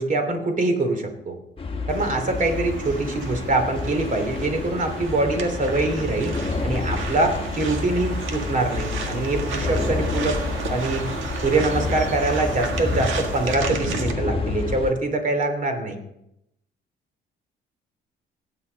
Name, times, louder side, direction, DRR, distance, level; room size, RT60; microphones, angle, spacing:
voice 1, 0.0-1.4 1.9-6.3 6.6-10.4 10.7-11.1 11.4-16.0, right 2 dB, 40° right, 5 dB, 2.8 m, -24 dB
sound 1, 1.6-14.9, left 3 dB, 25° left, 1.3 m, -29 dB
sound 2, 1.9-14.1, right 5 dB, 80° right, 1.7 m, -33 dB
17.5 x 9.1 x 4.0 m, 0.81 s
cardioid pair, 90°, 20 cm